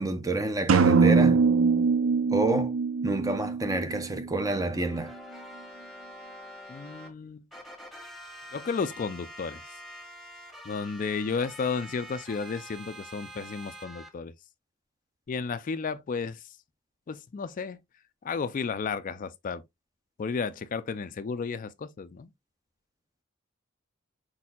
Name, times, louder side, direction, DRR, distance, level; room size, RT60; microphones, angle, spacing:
voice 1, 0.0-1.4 2.3-2.7 3.0-5.1, right 2 dB, 15° right, 0.6 m, -28 dB
sound 1, 0.7-4.5, right 5 dB, 75° right, 0.5 m, -23 dB
sound 2, 4.5-7.1 7.5-14.1, equal, ahead, 1.1 m, -46 dB
voice 2, 6.7-7.4 8.5-9.7 10.6-14.3 15.3-16.4 17.1-17.8 18.2-19.6 20.2-22.3, left 5 dB, 40° left, 0.4 m, -33 dB
4.7 x 4.3 x 2.3 m
head